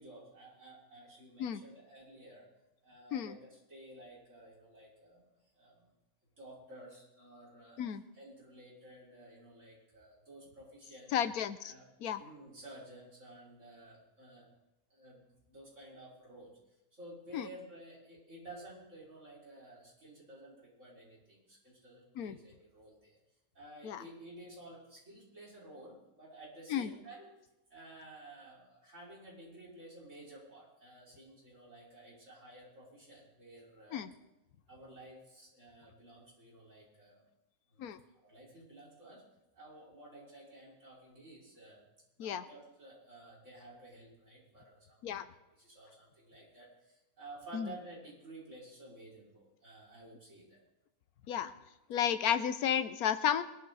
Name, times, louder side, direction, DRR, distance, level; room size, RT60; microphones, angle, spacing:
voice 1, 0.0-2.5 2.8-5.2 5.5-5.8 6.4-7.8 8.1-11.2 11.6-11.9 12.2-14.5 14.9-16.6 16.9-23.2 23.5-27.3 27.7-34.1 34.7-37.2 37.7-37.8 38.1-39.2 39.5-41.8 42.2-45.2 45.5-50.6, right 1 dB, 55° right, -6 dB, 6.1 m, -53 dB
voice 2, 11.1-11.7 12.0-12.2 17.3-17.5 22.2-22.4 23.8-24.0 26.7-26.9 33.9-34.1 37.8-38.0 42.2-42.4 45.0-45.3 47.5-47.7 51.3-51.5 51.9-53.4, left 9 dB, 90° left, 12 dB, 1.3 m, -32 dB
22.0 x 12.0 x 4.1 m, 0.95 s
omnidirectional pair, 1.5 m